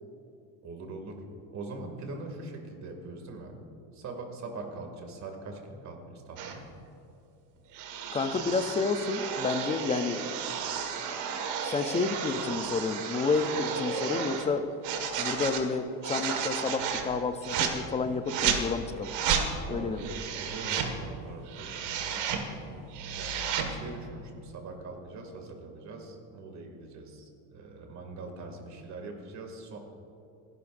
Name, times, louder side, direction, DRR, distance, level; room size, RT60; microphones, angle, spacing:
voice 1, 0.6-1.2 1.5-3.5 3.9-6.7 19.6-22.7 23.1-29.8, right 3 dB, 40° right, 3 dB, 2.3 m, -42 dB
sound 1, 6.4-6.6 7.7-14.5 14.8-15.6 16.0-17.1 17.4-17.7 18.3-18.6 19.0-19.4 20.0-20.9 21.4-22.4 22.8-23.7, right 7 dB, 70° right, 1.8 m, -32 dB
voice 2, 8.1-10.2 11.6-14.6 15.2-19.1 19.7-20.1, left 4 dB, 15° left, 9 dB, 0.4 m, -30 dB
29.0 x 11.0 x 2.6 m, 2.8 s
cardioid pair, 155°, 43 cm